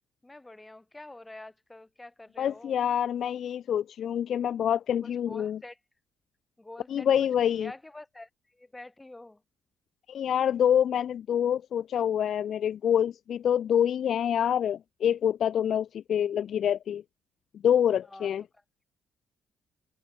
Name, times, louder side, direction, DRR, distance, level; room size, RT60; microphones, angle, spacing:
voice 1, 0.2-2.8 5.0-5.8 6.6-7.1 7.5-9.4 18.0-18.3, left 2 dB, 15° left, 8.0 m, -47 dB
voice 2, 2.4-5.6 6.9-7.7 10.1-17.0 17.6-18.4, left 9 dB, 65° left, 1.2 m, -26 dB
cardioid pair, 90°, 0 cm